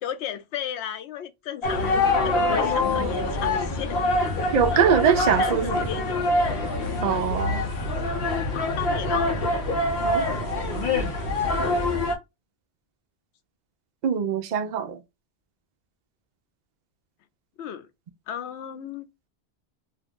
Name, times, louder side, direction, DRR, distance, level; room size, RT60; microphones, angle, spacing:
voice 1, 0.0-4.1 4.7-6.3 8.5-9.3 17.6-17.9 18.3-19.1, left 9 dB, 85° left, 0.9 m, -34 dB
sound 1, 1.6-12.2, left 2 dB, 65° left, 1.0 m, -25 dB
voice 2, 4.5-5.8 7.0-7.7 10.0-10.3 14.0-15.0, right 8 dB, 50° right, 0.6 m, -23 dB
2.7 x 2.4 x 3.5 m
omnidirectional pair, 1.1 m